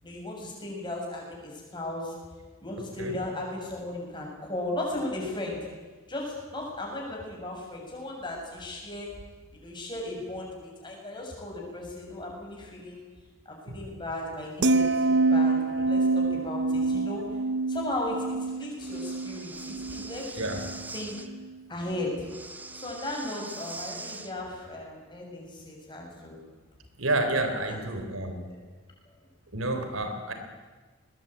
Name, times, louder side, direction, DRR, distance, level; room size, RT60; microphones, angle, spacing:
voice 1, 0.0-2.1 2.6-5.7 6.1-9.1 9.5-13.0 13.5-17.2 17.7-20.6 20.9-21.2 21.7-22.3 22.8-26.4 27.5-27.8 28.2-28.6, left 1 dB, 20° left, -1 dB, 7.2 m, -36 dB
sound 1, 14.6-20.9 21.2-21.6, right 3 dB, 55° right, 0.9 m, -27 dB
Breathing, 18.8-21.3 22.2-24.3, right 2 dB, 10° right, 0.9 m, -42 dB
voice 2, 27.0-28.4 29.5-30.3, right 2 dB, 75° right, 7 dB, 3.8 m, -29 dB
21.0 x 19.5 x 9.2 m, 1.3 s
head